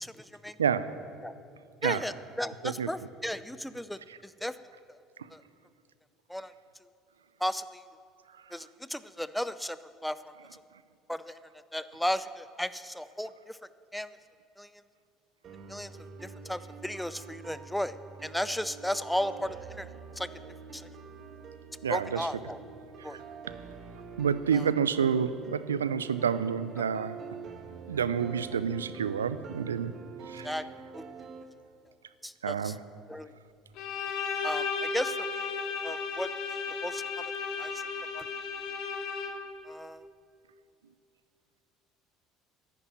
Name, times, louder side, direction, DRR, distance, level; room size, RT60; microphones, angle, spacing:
voice 1, 0.0-0.6 1.2-1.3 1.8-4.6 4.9-5.0 5.3-5.4 6.3-6.5 7.4-7.8 8.5-10.6 11.1-11.4 11.7-13.6 13.9-14.2 14.6-14.7 15.7-18.0 18.2-20.3 20.7-20.9 21.9-22.6 23.0-23.2 24.5-24.7 30.4-30.6 30.9-31.1 32.2-32.8 33.1-33.3 34.4-35.6 35.8-36.3 36.8-37.3 37.6-37.9 38.1-38.3 39.6-40.1, equal, 5° left, 14 dB, 0.6 m, -35 dB
voice 2, 0.6-1.0 1.8-2.0 2.6-2.9 21.8-22.3 23.1-23.2 24.2-27.2 27.9-29.9 30.3-30.5 32.4-32.8, right 7 dB, 85° right, 15 dB, 0.5 m, -29 dB
sound 1, 15.4-31.4, right 5 dB, 45° right, 1.4 m, -46 dB
Bowed string instrument, 33.8-39.6, left 5 dB, 60° left, 1.7 m, -34 dB
11.0 x 9.8 x 9.2 m, 2.4 s
hypercardioid pair, 65°, 0 cm